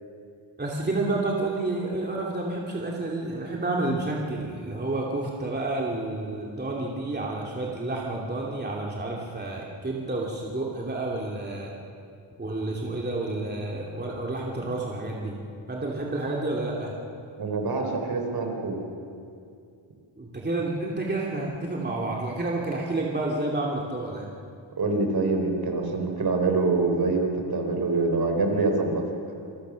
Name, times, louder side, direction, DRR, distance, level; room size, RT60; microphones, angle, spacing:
voice 1, 0.6-11.7 12.4-15.4 15.7-16.9 20.2-24.3, right 2 dB, 20° right, -3 dB, 2.6 m, -30 dB
voice 2, 17.4-18.8 24.8-29.0, right 3 dB, 50° right, 3 dB, 4.1 m, -25 dB
27.5 x 22.0 x 6.4 m, 2.5 s
wide cardioid pair, 140°, 48 cm